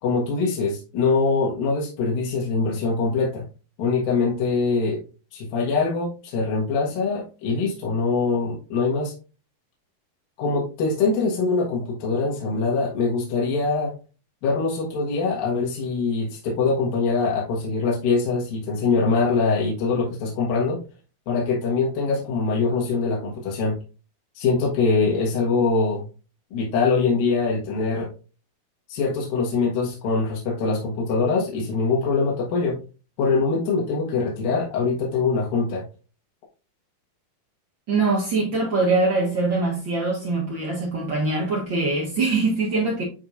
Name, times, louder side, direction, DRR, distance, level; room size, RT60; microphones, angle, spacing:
voice 1, 0.0-3.4 3.8-5.0 5.3-9.1 10.4-13.9 14.4-20.8 21.3-23.8 24.4-26.1 26.5-28.1 28.9-32.8 33.2-35.8, left 4 dB, 75° left, 3.2 m, -23 dB
voice 2, 37.9-43.0, right 3 dB, 55° right, 1.3 m, -23 dB
9.7 x 4.6 x 2.5 m
omnidirectional pair, 4.3 m